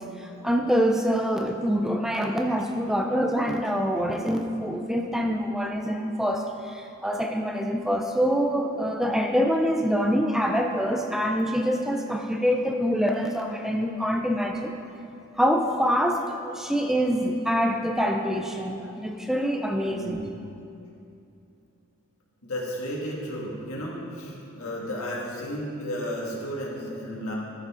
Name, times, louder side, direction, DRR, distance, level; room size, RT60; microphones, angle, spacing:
voice 1, 0.1-14.7 15.4-20.2, equal, ahead, 3 dB, 0.4 m, -25 dB
voice 2, 19.7-20.3 22.4-27.3, equal, 70° left, -3 dB, 1.8 m, -33 dB
13.0 x 6.2 x 3.7 m, 2.7 s
head